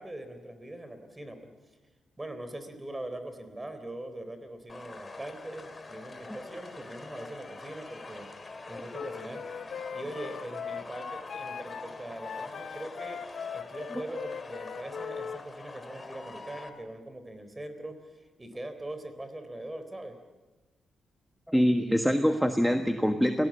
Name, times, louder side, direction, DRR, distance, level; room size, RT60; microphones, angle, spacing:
voice 1, 0.0-1.5 2.2-8.3 8.7-9.5 9.9-13.2 13.5-20.2, right 1 dB, 15° right, 8 dB, 3.8 m, -41 dB
sound 1, 4.7-16.7, left 3 dB, 25° left, 2.5 m, -44 dB
Wind instrument woodwind instrument, 8.9-15.4, left 7 dB, 65° left, 0.9 m, -40 dB
voice 2, 21.5-23.5, equal, ahead, 6 dB, 1.4 m, -24 dB
28.5 x 18.5 x 8.7 m, 1.2 s
cardioid pair, 105°, 0 cm